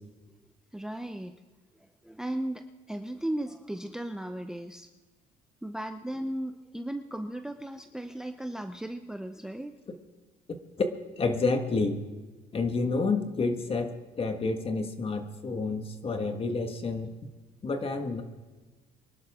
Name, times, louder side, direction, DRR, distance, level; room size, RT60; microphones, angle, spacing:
voice 1, 0.7-1.3 2.0-4.9 5.6-9.7, right 1 dB, 5° right, 7 dB, 0.6 m, -36 dB
voice 2, 11.2-12.0 12.5-13.9 14.2-17.1 17.6-18.2, left 3 dB, 35° left, 6 dB, 1.7 m, -29 dB
24.5 x 11.5 x 3.7 m, 1.3 s
cardioid pair, 110°, 17 cm